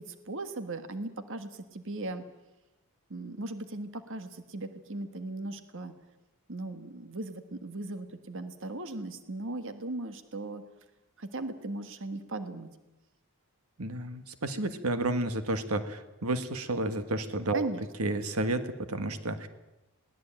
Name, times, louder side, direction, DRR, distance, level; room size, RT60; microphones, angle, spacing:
voice 1, 0.0-2.2 3.1-5.9 6.5-10.7 11.2-12.7 17.5-17.8, right 2 dB, 60° right, 9 dB, 1.6 m, -38 dB
voice 2, 13.8-17.7 18.0-19.5, right 2 dB, 75° right, 10 dB, 1.6 m, -31 dB
22.0 x 17.5 x 8.9 m, 0.97 s
head